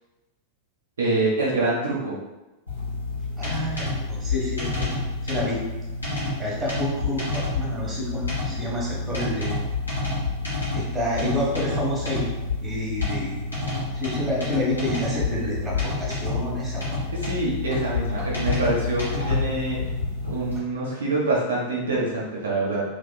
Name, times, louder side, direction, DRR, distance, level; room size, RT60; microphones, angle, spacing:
voice 1, 1.0-2.1 17.1-19.8 20.2-22.8, right 2 dB, 65° right, -5 dB, 0.6 m, -25 dB
sound 1, 2.7-20.6, left 3 dB, 80° left, 1.4 m, -28 dB
voice 2, 3.4-4.9 5.2-5.6 6.4-9.6 10.7-12.3 12.6-13.4 13.9-17.0, left 1 dB, 15° right, -3 dB, 1.3 m, -29 dB
3.3 x 3.2 x 2.2 m, 1.1 s
figure-of-eight pair, 90°, 0 cm